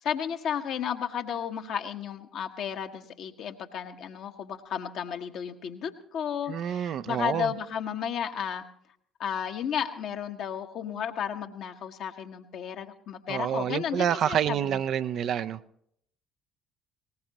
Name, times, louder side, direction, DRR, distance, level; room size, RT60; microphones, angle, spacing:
voice 1, 0.0-8.6 9.2-14.8, left 8 dB, 55° left, 5 dB, 1.2 m, -33 dB
voice 2, 6.5-7.5 13.3-15.6, right 9 dB, 55° right, 12 dB, 0.5 m, -28 dB
20.0 x 19.0 x 2.9 m, 0.68 s
figure-of-eight pair, 50°, 0 cm